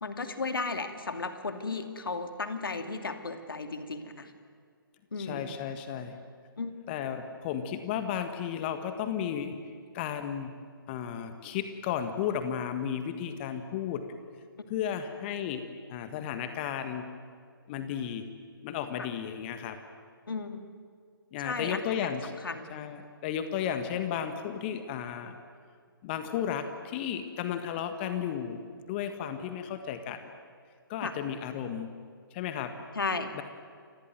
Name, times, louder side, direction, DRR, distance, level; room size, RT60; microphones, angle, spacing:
voice 1, 0.0-4.3 5.1-5.4 6.6-6.7 8.2-8.3 19.0-19.1 20.3-20.6 21.4-22.1 22.4-22.7 31.0-31.1 32.9-33.3, left 4 dB, 70° left, 7 dB, 2.6 m, -34 dB
voice 2, 5.2-6.2 6.9-9.6 9.9-10.5 10.9-14.0 14.7-15.6 15.9-17.0 17.7-18.2 18.6-19.8 21.3-22.3 22.7-25.4 26.0-30.2 30.9-31.9 32.3-32.7 33.3-33.4, left 9 dB, 25° left, 8 dB, 1.6 m, -34 dB
28.0 x 20.0 x 9.4 m, 2.1 s
figure-of-eight pair, 135°, 12 cm